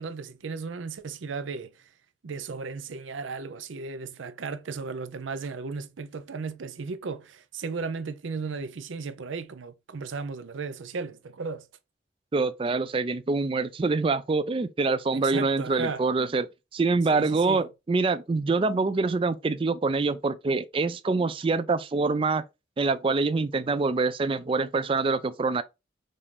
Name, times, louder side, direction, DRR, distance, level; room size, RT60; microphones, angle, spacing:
voice 1, 0.0-1.9 2.2-11.7 15.1-16.1 17.1-17.6, right 4 dB, 80° right, 0.5 m, -35 dB
voice 2, 12.3-22.4 22.8-25.6, right 3 dB, 25° right, 0.3 m, -25 dB
5.4 x 2.5 x 3.3 m
head